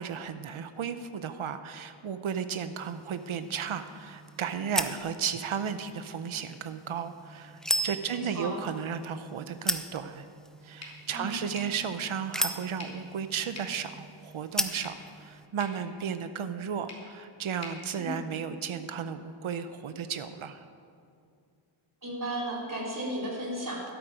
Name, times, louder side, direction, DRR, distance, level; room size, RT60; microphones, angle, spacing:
voice 1, 0.0-10.3 10.6-20.6, right 7 dB, 75° right, 10 dB, 0.8 m, -34 dB
sound 1, 2.8-15.5, equal, ahead, 0.6 m, -37 dB
voice 2, 8.1-8.6 11.1-11.4 18.0-18.2 22.0-23.8, right 1 dB, 40° right, -5 dB, 4.0 m, -34 dB
sound 2, 10.8-18.8, left 2 dB, 30° left, 2.9 m, -50 dB
13.0 x 12.5 x 5.0 m, 2.4 s
wide cardioid pair, 100°, 49 cm